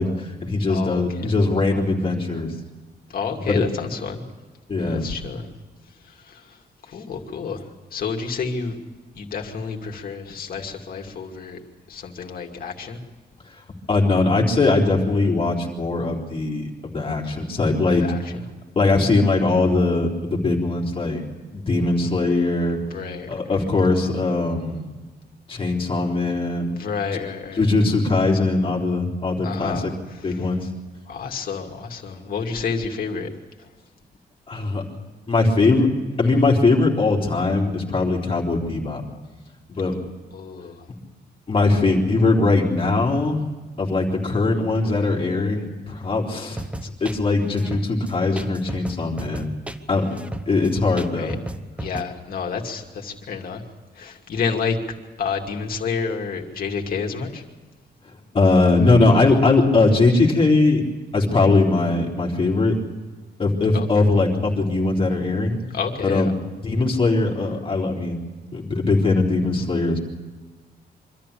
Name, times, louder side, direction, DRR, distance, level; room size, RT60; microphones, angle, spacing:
voice 1, 0.0-2.5 3.6-3.7 4.7-5.1 13.5-13.6 13.9-18.0 18.8-21.2 21.5-22.8 23.3-24.9 25.5-26.8 27.6-29.9 30.2-30.7 34.5-34.8 35.3-35.9 36.2-39.0 39.7-40.0 41.5-43.4 43.8-49.5 49.9-50.2 50.5-51.3 58.0-60.8 61.1-62.7 63.4-65.6 66.0-66.3 66.6-68.2 68.5-70.0, left 3 dB, 30° left, -1 dB, 3.8 m, -20 dB
voice 2, 0.7-1.3 3.1-4.3 4.8-5.5 6.0-8.8 9.1-11.6 11.9-13.0 17.9-18.4 22.9-23.6 26.7-27.6 29.4-30.5 31.1-33.3 33.6-33.7 40.3-40.9 51.2-51.4 51.8-53.6 53.9-54.8 55.2-57.4 63.7-63.9 65.7-66.3, left 5 dB, 60° left, 2 dB, 2.6 m, -30 dB
sound 1, 46.6-52.0, right 1 dB, 5° right, 0.8 m, -33 dB
25.0 x 13.5 x 8.6 m, 1.3 s
wide cardioid pair, 155°, 17 cm